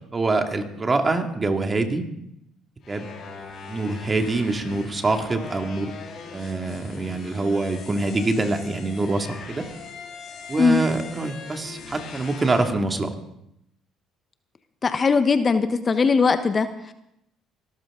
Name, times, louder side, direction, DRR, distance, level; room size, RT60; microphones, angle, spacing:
voice 1, 0.1-2.0 2.9-3.1 3.7-5.9 6.3-9.7 10.5-13.1, right 3 dB, 30° right, 5 dB, 2.4 m, -25 dB
sound 1, 2.8-12.7, left 5 dB, 55° left, 5.5 m, -41 dB
voice 2, 14.8-16.9, left 5 dB, 35° left, 10 dB, 1.1 m, -20 dB
24.0 x 13.5 x 3.8 m, 0.79 s
hypercardioid pair, 65°, 0 cm